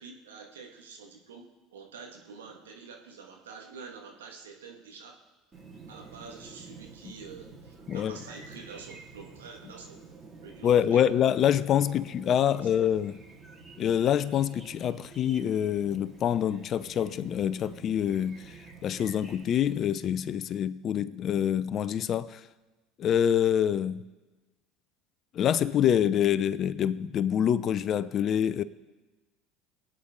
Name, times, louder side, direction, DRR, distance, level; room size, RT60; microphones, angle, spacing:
voice 1, 0.0-5.2 5.9-10.0 10.4-11.0 11.8-12.0 12.4-12.7, right 5 dB, 85° right, 1.8 m, -47 dB
Chirp tweet, 5.5-19.7, right 4 dB, 30° right, 3.9 m, -50 dB
voice 2, 7.9-8.2 10.6-13.2 13.8-18.5 18.8-22.4 23.0-24.1 25.3-28.6, left 9 dB, 45° left, 0.6 m, -26 dB
23.0 x 8.9 x 3.8 m
hypercardioid pair, 70°, 0 cm